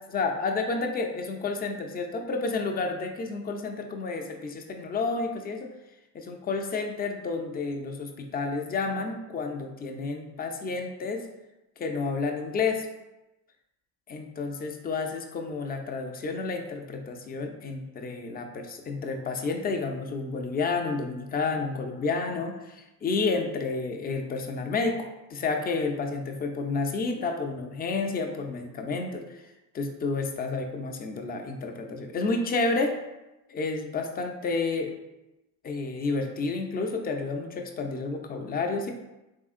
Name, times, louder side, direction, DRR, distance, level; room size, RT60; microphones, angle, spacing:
voice 1, 0.1-5.7 6.1-11.3 11.8-12.9 14.1-29.4 29.7-33.0 33.5-34.9 35.6-38.9, left 4 dB, 20° left, 4 dB, 0.4 m, -30 dB
3.7 x 3.4 x 2.4 m, 0.97 s
supercardioid pair, 85°, 48 cm